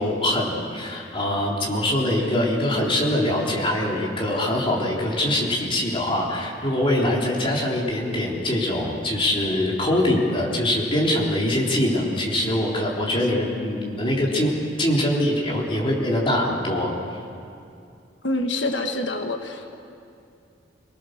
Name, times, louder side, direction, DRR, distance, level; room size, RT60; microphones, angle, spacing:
voice 1, 0.0-14.5 14.8-16.9, left 1 dB, 30° left, -3 dB, 3.7 m, -23 dB
voice 2, 18.2-19.7, left 2 dB, 85° left, 5 dB, 1.6 m, -26 dB
26.5 x 20.0 x 6.7 m, 2.5 s
head